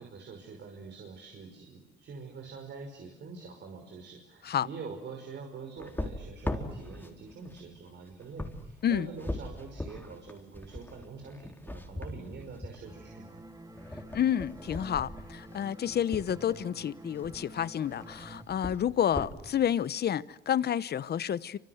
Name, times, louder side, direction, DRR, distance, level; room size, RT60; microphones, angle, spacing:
voice 1, 0.0-13.4, right 4 dB, 60° right, 5.6 m, -45 dB
sound 1, 5.8-16.3 17.1-17.6 17.8-19.3, left 1 dB, 10° left, 4.2 m, -40 dB
sound 2, 12.9-18.4, right 1 dB, 20° right, 2.7 m, -49 dB
voice 2, 14.1-21.6, left 9 dB, 55° left, 1.0 m, -29 dB
28.0 x 26.0 x 7.9 m
cardioid pair, 90°, 20 cm